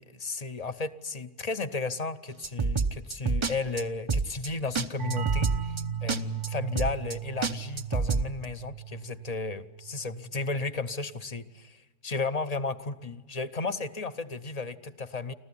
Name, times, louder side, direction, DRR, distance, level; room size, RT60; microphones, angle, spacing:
voice 1, 0.0-15.3, left 3 dB, 35° left, 12 dB, 0.9 m, -34 dB
sound 1, 2.4-3.5 3.8-3.9 4.1-4.5 4.7-4.8 5.1-5.8 6.1-6.2 6.4-6.5 6.7-7.1 7.4-8.3, right 4 dB, 30° right, 0.6 m, -27 dB
sound 2, 5.0-10.4, right 8 dB, 70° right, 1.3 m, -36 dB
26.0 x 15.0 x 9.9 m, 1.3 s
omnidirectional pair, 1.3 m